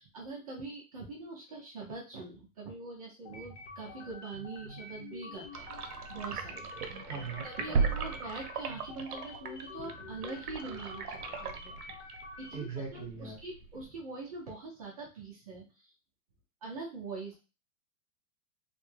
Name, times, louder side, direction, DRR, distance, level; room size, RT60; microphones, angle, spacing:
voice 1, 0.0-5.7 6.1-6.8 7.4-11.8 12.4-15.9 16.6-17.3, right 3 dB, 25° right, -5 dB, 0.6 m, -43 dB
sound 1, 3.3-12.8, left 3 dB, 50° left, 0.9 m, -48 dB
sound 2, 5.5-13.8, right 5 dB, 75° right, 0.8 m, -37 dB
voice 2, 7.0-8.1 12.5-13.4, right 5 dB, 25° left, -5 dB, 0.5 m, -41 dB
3.2 x 2.2 x 3.2 m, 0.32 s
hypercardioid pair, 175°, 45 cm